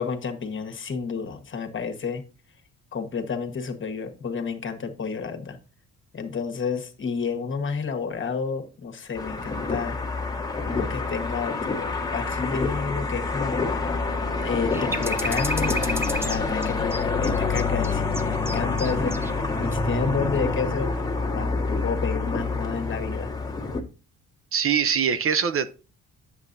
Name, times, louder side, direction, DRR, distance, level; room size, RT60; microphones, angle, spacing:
voice 1, 0.0-2.2 2.9-5.6 6.1-10.0 10.6-13.8 14.4-20.9 21.3-23.3, left 5 dB, 40° left, 1.4 m, -30 dB
sound 1, 9.1-23.8, left 3 dB, 10° left, 1.5 m, -27 dB
sound 2, 14.7-19.3 19.6-19.7, equal, 10° right, 0.7 m, -32 dB
voice 2, 24.5-25.7, right 7 dB, 45° right, 0.6 m, -23 dB
8.1 x 7.3 x 2.6 m
cardioid pair, 90°, 30 cm